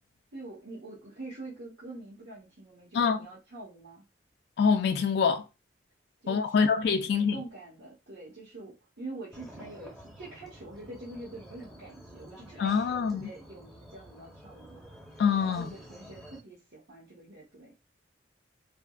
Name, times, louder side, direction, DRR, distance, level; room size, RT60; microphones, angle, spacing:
voice 1, 0.3-4.0 6.2-6.7 7.1-14.7 15.4-17.7, right 2 dB, 85° right, 1.0 m, -45 dB
voice 2, 2.9-3.3 4.6-5.4 6.3-7.4 12.6-13.3 15.2-15.7, left 6 dB, 65° left, 0.3 m, -25 dB
sound 1, 9.3-16.4, equal, ahead, 0.6 m, -50 dB
3.3 x 2.1 x 2.3 m
head